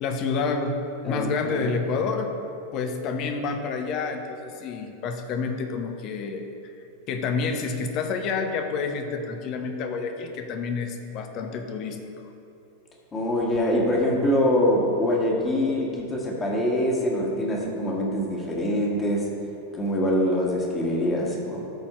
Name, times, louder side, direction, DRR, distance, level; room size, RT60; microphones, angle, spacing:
voice 1, 0.0-0.8 1.1-2.3 2.7-6.7 7.1-12.0, left 4 dB, 40° left, 6 dB, 0.8 m, -29 dB
voice 2, 1.0-1.7 13.1-19.3 19.7-21.7, left 1 dB, 20° left, -2 dB, 1.7 m, -24 dB
13.0 x 4.3 x 4.5 m, 2.9 s
figure-of-eight pair, 90°, 0 cm